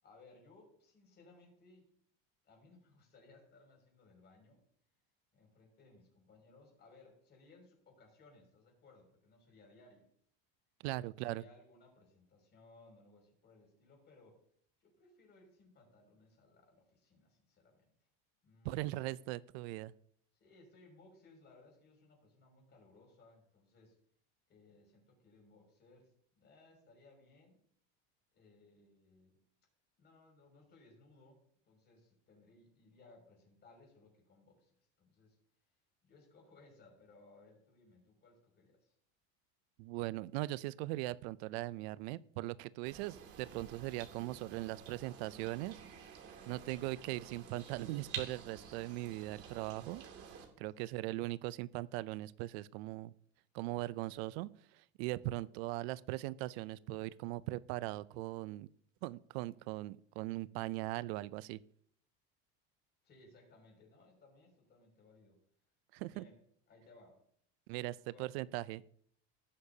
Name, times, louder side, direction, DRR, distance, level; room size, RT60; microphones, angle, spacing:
voice 1, 0.0-1.9 2.4-4.6 5.3-10.1 11.2-14.4 14.8-17.9 18.4-19.2 20.4-24.0 24.5-26.1 26.4-27.6 28.3-29.4 30.0-35.4 36.0-38.9 50.7-50.9 63.0-65.4 66.0-66.4 66.7-67.2 67.9-68.5, left 2 dB, 35° left, 1 dB, 6.1 m, -63 dB
voice 2, 10.8-11.4 18.6-19.9 39.8-45.8 46.5-50.0 50.6-53.1 53.5-58.7 59.0-61.6 65.9-66.2 67.7-68.8, right 18 dB, 80° right, 18 dB, 0.5 m, -40 dB
sound 1, 42.8-50.4, right 7 dB, 50° right, 2.6 m, -50 dB
18.5 x 9.9 x 2.8 m, 0.62 s
cardioid pair, 145°, 31 cm